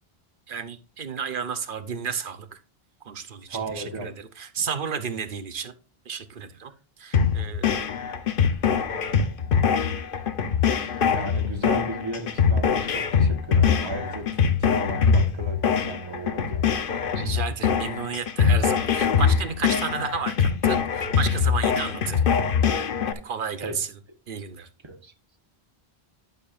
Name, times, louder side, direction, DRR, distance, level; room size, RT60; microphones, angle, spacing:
voice 1, 0.5-2.6 3.0-5.7 6.1-6.7 7.0-7.8 17.2-22.2 23.0-24.0 24.3-24.7, right 6 dB, 60° right, 0.9 m, -32 dB
voice 2, 3.5-4.1 11.1-16.6 23.6-23.7 24.8-25.1, right 2 dB, 30° right, 1.2 m, -35 dB
sound 1, 7.1-23.1, left 6 dB, 60° left, 0.9 m, -23 dB
11.5 x 6.7 x 2.5 m
omnidirectional pair, 1.0 m